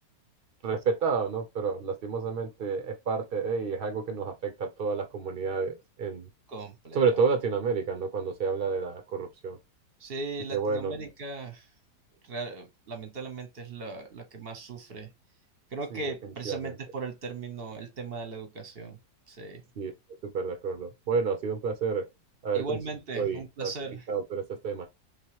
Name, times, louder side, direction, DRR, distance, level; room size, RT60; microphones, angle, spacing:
voice 1, 0.6-6.3 6.9-9.6 10.5-10.9 15.9-16.7 19.8-19.9 20.2-22.1 22.4-22.8 23.1-23.7 24.1-24.9, right 5 dB, 60° right, 0.5 m, -30 dB
voice 2, 6.5-7.0 10.0-11.7 12.2-15.1 15.7-19.0 19.3-19.6 22.5-24.0, right 3 dB, 45° right, 0.9 m, -38 dB
3.6 x 3.0 x 2.9 m
omnidirectional pair, 1.9 m